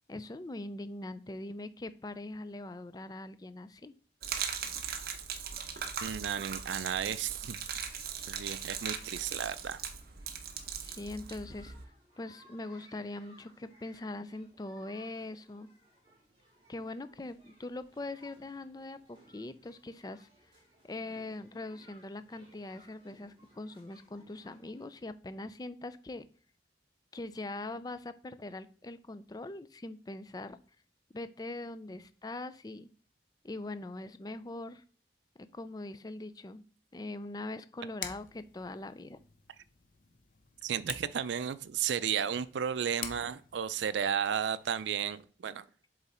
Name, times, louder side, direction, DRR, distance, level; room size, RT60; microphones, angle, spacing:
voice 1, 0.1-3.9 10.8-11.7 12.2-15.7 16.7-20.3 20.8-26.3 27.1-30.6 31.1-32.9 33.4-34.8 35.4-36.6 36.9-39.2, left 2 dB, 20° left, 13 dB, 0.4 m, -42 dB
Gurgling / Liquid, 4.2-11.8, right 7 dB, 55° right, 0.8 m, -39 dB
voice 2, 6.0-7.6 8.3-9.8 40.6-45.6, right 8 dB, 85° right, 15 dB, 0.4 m, -33 dB
sound 1, 7.7-24.9, equal, 30° right, 3.0 m, -63 dB
sound 2, 38.0-45.2, left 8 dB, 50° left, 0.7 m, -48 dB
7.2 x 3.9 x 4.3 m, 0.43 s
head